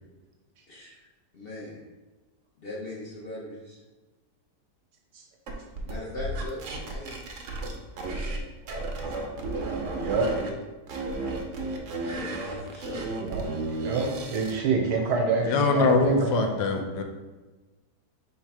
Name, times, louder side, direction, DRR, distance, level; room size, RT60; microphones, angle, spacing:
voice 1, 1.3-1.8 2.6-3.8 5.8-7.4 11.8-13.1, left 1 dB, 50° left, -6 dB, 0.7 m, -40 dB
sound 1, 5.5-8.4 8.7-10.5 10.9-14.6, right 2 dB, 60° right, 0.8 m, -33 dB
voice 2, 10.0-10.3 11.0-11.1 13.2-13.5 13.8-16.6, right 4 dB, 80° right, 1 dB, 1.4 m, -27 dB
voice 3, 15.4-17.0, left 3 dB, 75° left, 4 dB, 1.2 m, -23 dB
3.5 x 3.2 x 4.6 m, 1.2 s
omnidirectional pair, 1.8 m